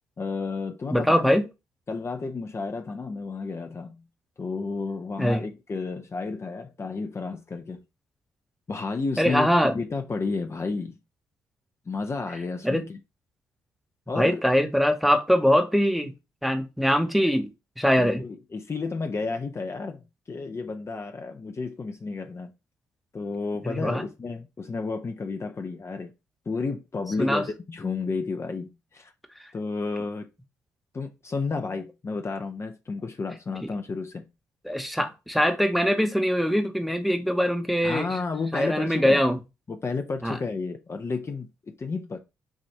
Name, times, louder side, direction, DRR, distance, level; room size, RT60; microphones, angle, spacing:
voice 1, 0.2-1.4 1.9-4.0 4.4-7.8 8.7-11.0 11.9-13.0 14.1-14.4 17.8-20.0 20.3-22.5 23.1-26.1 26.5-29.1 29.5-30.3 30.9-34.3 34.8-34.9 37.8-39.2 39.7-42.2, left 4 dB, 30° left, 0.6 m, -32 dB
voice 2, 0.9-1.4 5.2-5.4 9.2-9.7 12.6-12.8 14.2-16.1 16.4-17.5 17.8-18.2 23.6-24.0 27.2-27.4 34.6-38.1 38.5-39.4 40.2-40.4, equal, ahead, 0.9 m, -22 dB
6.1 x 2.6 x 3.3 m
hypercardioid pair, 45°, 8 cm